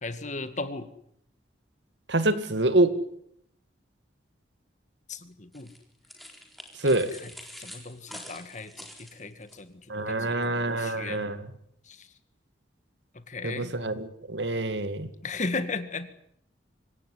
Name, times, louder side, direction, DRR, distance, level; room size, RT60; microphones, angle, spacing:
voice 1, 0.0-0.9 5.1-5.7 6.8-7.3 7.6-11.2 11.9-12.1 13.1-13.7 15.2-16.1, left 3 dB, 40° left, 11 dB, 2.1 m, -36 dB
voice 2, 2.1-3.0 6.8-7.1 9.9-11.4 13.4-15.1, right 2 dB, 75° right, 12 dB, 2.1 m, -26 dB
sound 1, 5.5-9.6, equal, ahead, 4.2 m, -46 dB
25.5 x 17.5 x 10.0 m, 0.72 s
head